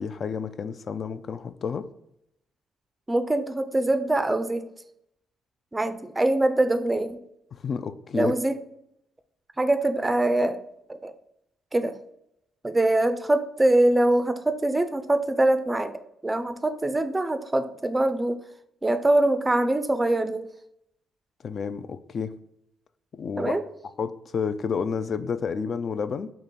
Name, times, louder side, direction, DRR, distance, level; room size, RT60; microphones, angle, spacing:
voice 1, 0.0-1.9 7.5-8.3 21.4-22.3 23.1-23.5 24.0-26.3, left 6 dB, 50° left, 11 dB, 0.3 m, -30 dB
voice 2, 3.1-4.7 5.7-7.2 8.1-8.5 9.6-10.6 10.9-11.1 11.7-12.0 12.6-15.9 16.2-18.4 18.8-20.5 23.4-23.6, right 1 dB, 15° right, 10 dB, 0.4 m, -23 dB
3.7 x 2.9 x 4.1 m, 0.78 s
cardioid pair, 90°, 0 cm